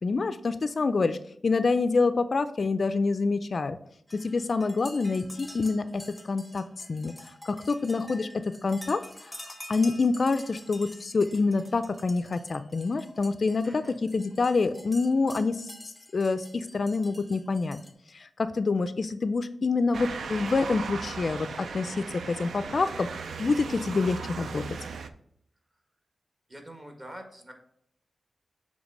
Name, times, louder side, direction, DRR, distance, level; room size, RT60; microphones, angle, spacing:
voice 1, 0.0-1.2 1.4-3.8 4.1-7.1 7.5-9.3 9.7-17.8 18.1-23.1 23.4-24.6, left 4 dB, 50° left, 12 dB, 0.3 m, -27 dB
sound 1, 4.1-17.9, left 1 dB, 5° left, 0.8 m, -48 dB
voice 2, 13.6-14.0 26.5-27.5, right 1 dB, 25° right, 4 dB, 1.3 m, -45 dB
Motor vehicle (road) / Siren, 19.9-25.1, right 5 dB, 85° right, 0.4 m, -37 dB
7.0 x 3.2 x 5.3 m, 0.69 s
wide cardioid pair, 110°, 0 cm